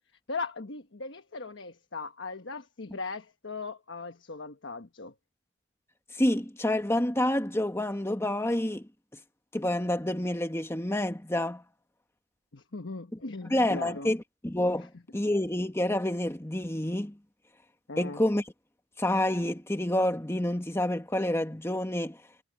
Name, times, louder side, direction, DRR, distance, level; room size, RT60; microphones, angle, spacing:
voice 1, 0.3-5.1 12.5-14.1 14.8-14.9 17.9-18.2, left 3 dB, 65° left, 1.3 m, -38 dB
voice 2, 6.1-8.9 9.5-11.6 13.5-17.1 18.0-18.4 19.0-22.2, left 1 dB, 15° left, 1.5 m, -28 dB
head